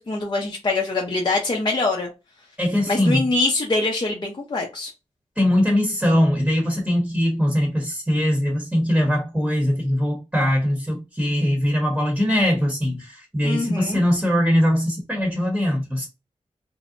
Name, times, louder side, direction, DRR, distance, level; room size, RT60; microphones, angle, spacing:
voice 1, 0.0-2.1 2.9-4.9 13.4-14.0, left 3 dB, 35° left, 0.6 m, -24 dB
voice 2, 2.6-3.2 5.4-16.1, equal, 5° right, 1.0 m, -21 dB
2.6 x 2.0 x 2.5 m
cardioid pair, 40°, 13 cm